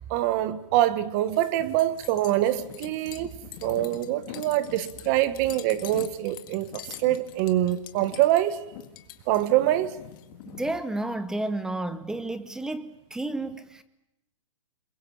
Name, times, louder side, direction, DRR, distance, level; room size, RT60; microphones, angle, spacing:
voice 1, 0.1-3.3 3.6-8.6 9.3-9.9, right 13 dB, 30° right, 1.4 m, -25 dB
sound 1, 1.3-10.8, left 13 dB, 40° left, 1.8 m, -43 dB
voice 2, 10.5-13.8, right 2 dB, 5° right, 0.8 m, -31 dB
28.0 x 22.0 x 7.2 m
hypercardioid pair, 160°, 17 cm